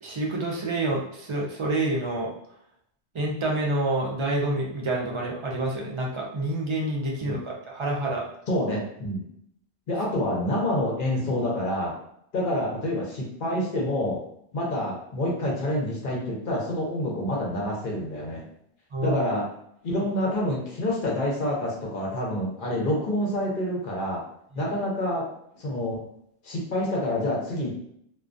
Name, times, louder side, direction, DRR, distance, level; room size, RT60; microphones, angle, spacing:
voice 1, 0.0-2.3 3.1-8.2 18.9-19.2, right 2 dB, 50° right, -2 dB, 0.3 m, -28 dB
voice 2, 8.5-9.2 9.9-12.0 12.3-14.2 14.5-18.4 19.0-19.5 19.8-24.3 24.5-26.0 26.4-27.7, left 1 dB, 55° left, -3 dB, 0.8 m, -27 dB
2.3 x 2.2 x 2.5 m, 0.73 s
omnidirectional pair, 1.1 m